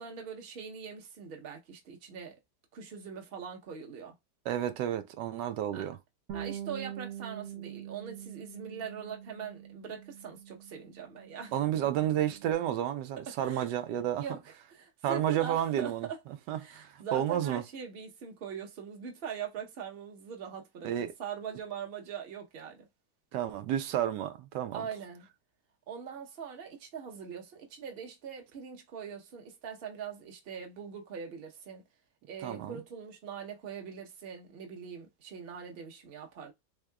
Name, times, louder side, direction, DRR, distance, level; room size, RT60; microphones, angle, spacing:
voice 1, 0.0-2.4 2.7-4.1 5.7-5.9 6.3-11.5 13.4-13.7 14.2-15.9 16.6-22.9 24.7-25.3 25.9-31.8 32.3-36.5, right 7 dB, 40° right, 1.0 m, -42 dB
voice 2, 4.5-6.0 11.5-14.2 15.0-16.1 16.5-17.6 20.8-21.1 23.3-24.9 32.4-32.8, right 11 dB, 90° right, 1.2 m, -31 dB
Bass guitar, 6.3-12.5, right 11 dB, 65° right, 1.3 m, -44 dB
3.7 x 3.5 x 2.2 m
omnidirectional pair, 1.8 m